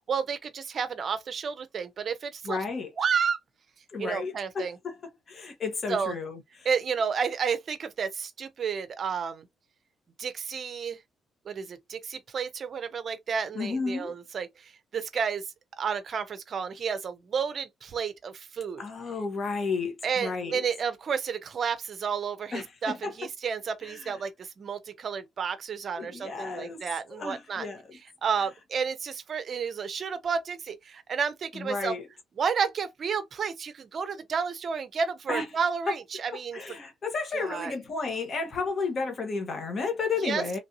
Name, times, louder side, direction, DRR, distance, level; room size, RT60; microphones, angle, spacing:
voice 1, 0.1-2.6 3.0-3.4 4.0-4.8 5.9-6.1 6.6-9.5 10.2-11.0 11.5-15.4 15.8-18.8 20.0-27.7 28.2-31.9 32.4-36.6 37.3-37.7 40.2-40.4, right 6 dB, 50° right, 0.5 m, -31 dB
voice 2, 2.4-2.9 3.9-5.0 5.3-6.4 13.5-14.1 18.8-20.6 22.5-23.1 23.8-24.1 26.0-26.8 27.1-27.8 31.5-32.0 35.3-35.5 35.9-36.0 36.5-40.6, left 4 dB, 45° left, 1.0 m, -32 dB
3.2 x 2.6 x 2.6 m
cardioid pair, 90°, 0 cm